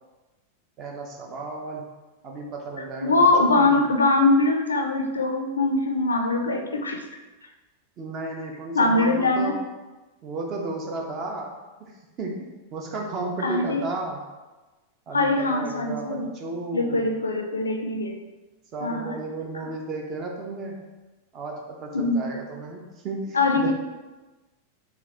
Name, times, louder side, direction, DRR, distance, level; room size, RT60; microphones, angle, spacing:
voice 1, 0.8-1.9 2.2-3.8 8.0-9.6 10.2-11.9 12.2-14.2 15.1-17.1 18.7-20.8 21.3-23.7, right 3 dB, 35° right, 1 dB, 0.6 m, -34 dB
voice 2, 3.0-7.0 8.7-9.6 13.4-13.9 15.1-16.3 16.7-18.2 18.8-19.2 21.9-22.3 23.3-23.7, left 2 dB, 75° left, 4 dB, 0.3 m, -22 dB
4.0 x 2.4 x 2.8 m, 1.2 s
figure-of-eight pair, 90°, 0 cm